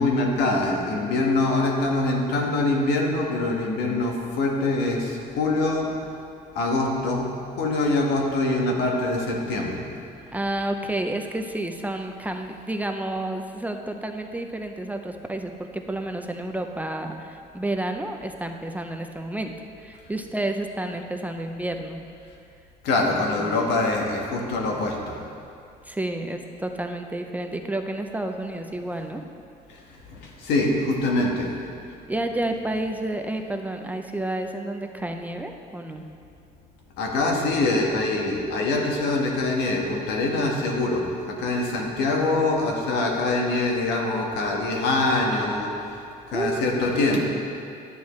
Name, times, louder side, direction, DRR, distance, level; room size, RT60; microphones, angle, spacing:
voice 1, 0.0-5.9 6.5-9.8 22.8-25.2 29.7-31.5 37.0-46.0 46.3-47.2, left 2 dB, 85° left, 0 dB, 1.5 m, -24 dB
voice 2, 10.3-22.0 23.1-23.5 25.8-29.2 32.1-36.1 46.3-46.6 46.9-47.0, right 1 dB, 10° right, 4 dB, 0.5 m, -30 dB
11.5 x 9.3 x 3.2 m, 2.5 s
cardioid pair, 110°, 17 cm